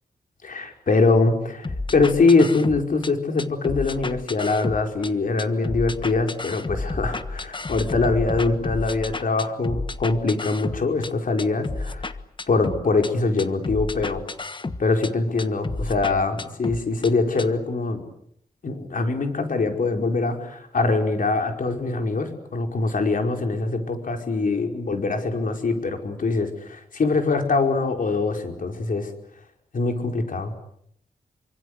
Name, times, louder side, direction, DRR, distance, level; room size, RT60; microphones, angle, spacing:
voice 1, 0.4-12.2 12.5-14.2 14.8-18.0 18.6-29.1 29.7-30.5, left 3 dB, 60° left, 4 dB, 5.1 m, -23 dB
sound 1, 1.6-3.1 3.4-5.1 5.4-11.1 11.4-13.1 13.4-15.1 15.4-17.1 17.4-17.5, left 3 dB, 30° left, 1.3 m, -31 dB
27.5 x 25.5 x 8.2 m, 0.72 s
wide cardioid pair, 125°, 16 cm